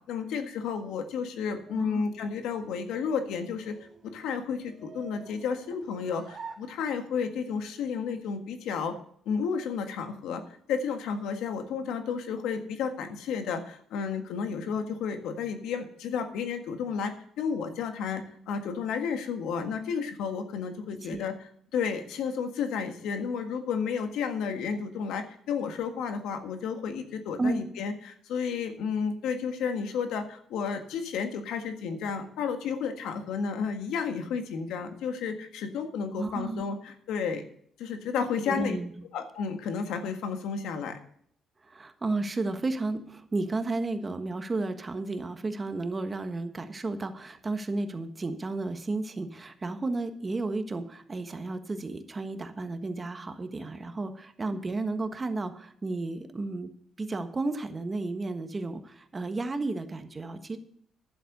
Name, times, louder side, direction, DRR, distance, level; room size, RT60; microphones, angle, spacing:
voice 1, 0.1-3.7 4.0-8.9 9.2-10.4 10.7-21.3 21.7-37.4 37.8-38.8 39.1-41.0 54.5-54.6, left 6 dB, 85° left, 7 dB, 1.6 m, -32 dB
voice 2, 1.7-2.0 21.0-21.2 27.4-27.6 36.2-36.6 38.5-38.9 41.6-56.7 57.0-60.6, right 3 dB, 30° right, 8 dB, 1.4 m, -32 dB
sound 1, 2.4-7.4, right 5 dB, 50° right, 1.4 m, -49 dB
11.0 x 7.6 x 6.7 m, 0.64 s
cardioid pair, 90°, 0 cm